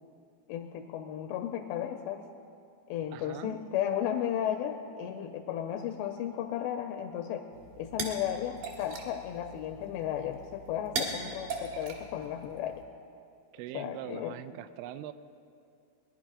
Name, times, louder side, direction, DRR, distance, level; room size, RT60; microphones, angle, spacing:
voice 1, 0.5-2.2 2.9-7.4 7.8-12.8 13.7-14.4, left 10 dB, 85° left, 6 dB, 2.5 m, -34 dB
voice 2, 3.1-3.6 13.5-15.1, right 13 dB, 90° right, 13 dB, 2.9 m, -42 dB
sound 1, 7.5-12.8, right 4 dB, 60° right, 2.8 m, -40 dB
20.5 x 11.0 x 5.0 m, 2.5 s
omnidirectional pair, 5.2 m